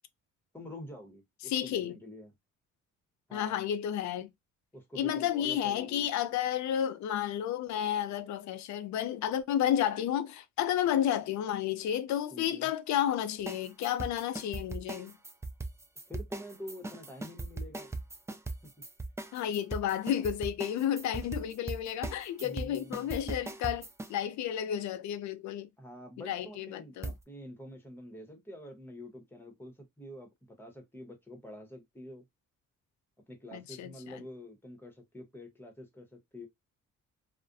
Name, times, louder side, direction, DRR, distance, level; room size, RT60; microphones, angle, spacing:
voice 1, 0.5-2.3 3.3-3.6 4.7-6.1 12.3-12.7 16.1-17.9 22.4-23.2 25.8-30.3 30.6-32.2 33.3-36.5, left 1 dB, 5° left, 0.9 m, -47 dB
voice 2, 1.4-1.9 3.3-4.3 4.9-15.2 19.3-25.7 26.3-27.1 33.5-34.2, left 10 dB, 70° left, 0.5 m, -31 dB
sound 1, 13.5-24.1 27.0-27.2, right 2 dB, 10° right, 0.3 m, -39 dB
2.4 x 2.1 x 2.5 m
cardioid pair, 90°, 30 cm